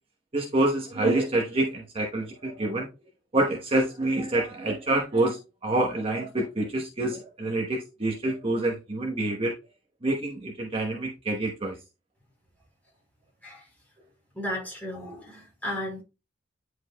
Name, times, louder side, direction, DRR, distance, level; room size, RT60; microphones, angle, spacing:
voice 1, 0.3-2.9 3.3-9.5 10.0-11.7, right 2 dB, 30° right, 1.0 m, -27 dB
voice 2, 14.3-16.0, left 1 dB, 10° left, 4.0 m, -34 dB
10.0 x 4.8 x 2.2 m
head